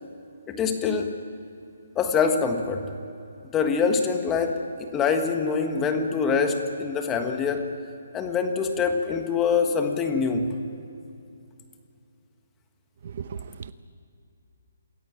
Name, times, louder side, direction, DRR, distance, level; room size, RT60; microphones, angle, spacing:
voice 1, 0.5-1.1 1.9-2.9 3.5-7.7 8.1-10.5, left 5 dB, 15° left, 5 dB, 1.5 m, -24 dB
voice 2, 13.0-13.7, right 7 dB, 50° right, 13 dB, 0.7 m, -36 dB
27.0 x 14.0 x 8.8 m, 2.6 s
hypercardioid pair, 165°, 0 cm